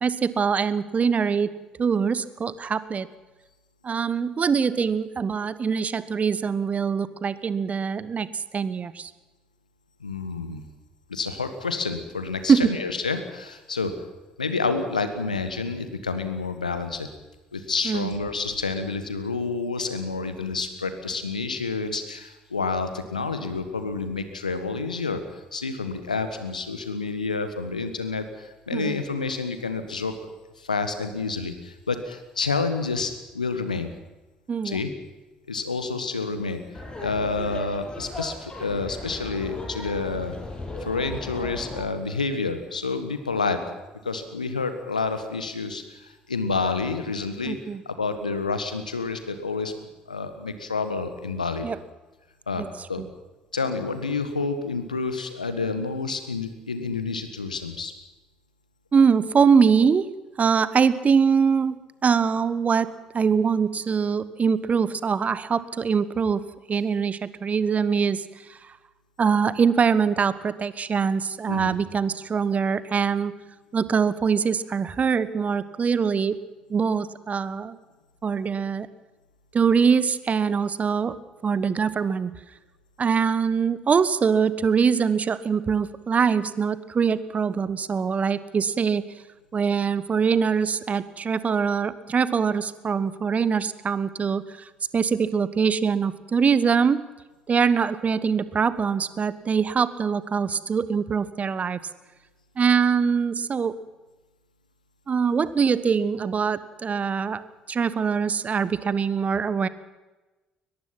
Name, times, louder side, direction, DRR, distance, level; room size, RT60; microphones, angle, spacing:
voice 1, 0.0-1.5 1.8-3.1 3.8-9.1 12.5-12.7 17.8-18.1 28.7-29.0 34.5-34.8 47.4-47.8 51.6-51.8 52.6-52.7 53.0-53.1 58.9-60.1 60.4-61.8 62.0-62.9 63.1-66.4 66.7-68.6 69.2-73.3 73.7-76.3 76.7-77.8 78.2-78.9 79.5-81.2 81.4-82.4 83.0-89.0 89.5-94.6 94.9-97.1 97.5-101.8 102.6-103.7 105.1-107.4 107.7-109.7, right 6 dB, 35° right, 15 dB, 1.3 m, -23 dB
voice 2, 10.0-10.6 11.1-13.9 14.4-17.1 17.5-25.2 25.5-30.1 30.6-33.9 34.6-34.9 35.5-36.6 37.0-40.4 40.8-43.6 44.0-47.6 47.8-51.7 52.5-53.0 53.5-57.9 71.5-71.8, left 4 dB, 90° left, 9 dB, 1.6 m, -29 dB
Laughter, 36.7-41.8, left 2 dB, 20° left, 7.7 m, -36 dB
22.0 x 21.0 x 6.0 m, 1.1 s
figure-of-eight pair, 50°, 4 cm